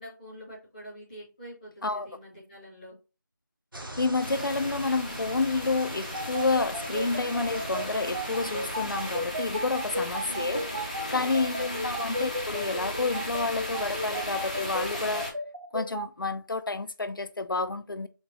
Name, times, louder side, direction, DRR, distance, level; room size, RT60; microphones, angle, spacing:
voice 1, 0.0-2.9 10.2-10.7 11.4-12.1, right 1 dB, 5° left, 0.9 m, -44 dB
sound 1, 3.7-9.2, right 1 dB, 80° right, 1.2 m, -42 dB
voice 2, 4.0-15.3 15.7-18.1, left 3 dB, 75° left, 0.5 m, -29 dB
sound 2, 4.2-15.3, equal, 20° left, 0.6 m, -36 dB
sound 3, 6.1-16.0, equal, 60° right, 1.3 m, -33 dB
4.3 x 3.2 x 3.1 m
figure-of-eight pair, 180°, 11 cm